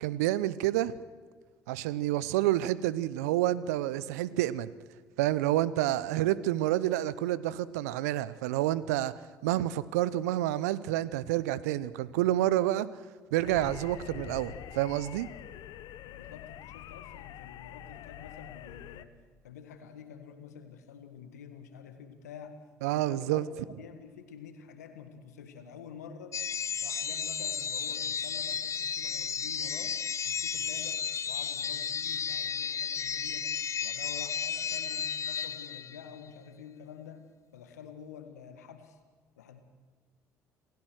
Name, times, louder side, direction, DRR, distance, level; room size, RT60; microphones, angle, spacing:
voice 1, 0.0-1.0 1.7-4.7 5.2-9.1 9.4-12.9 13.3-15.3 22.8-23.5, right 14 dB, 75° right, 18 dB, 0.7 m, -29 dB
sound 1, 13.4-19.1, left 12 dB, 60° left, 0.9 m, -45 dB
voice 2, 16.0-19.1 19.4-22.6 22.9-26.3 26.8-29.9 30.2-33.5 33.8-37.3 37.5-39.0 39.4-39.6, left 7 dB, 85° left, 8 dB, 1.9 m, -48 dB
sound 2, 26.3-36.2, left 7 dB, 35° left, 0.5 m, -33 dB
28.0 x 15.5 x 6.3 m, 1.5 s
hypercardioid pair, 60°, 9 cm